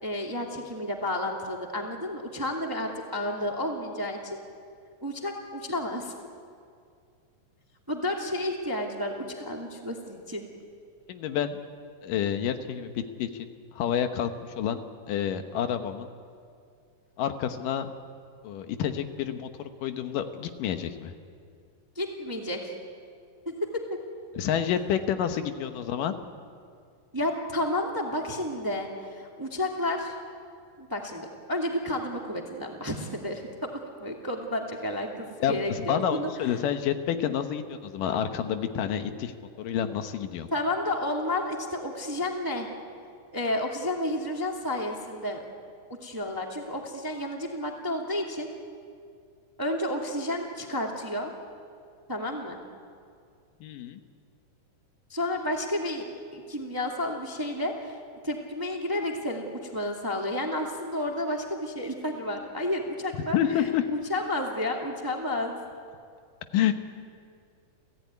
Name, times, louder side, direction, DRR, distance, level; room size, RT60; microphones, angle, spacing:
voice 1, 0.0-4.4 5.0-6.1 7.9-10.4 21.9-22.7 23.4-24.0 27.1-30.1 30.8-33.7 34.0-36.3 40.5-42.7 43.3-45.4 46.0-48.5 49.6-51.3 52.1-52.6 55.1-56.1 56.3-58.0 58.2-65.6, left 1 dB, 10° right, 1 dB, 1.6 m, -31 dB
voice 2, 11.1-11.6 12.0-13.5 13.7-14.8 15.1-16.1 17.2-17.9 18.4-21.1 24.4-26.2 35.4-39.3 39.6-40.5 53.6-54.0 63.3-63.9 66.5-66.7, left 9 dB, 80° left, 8 dB, 2.7 m, -29 dB
29.5 x 15.5 x 9.5 m, 2.3 s
omnidirectional pair, 3.8 m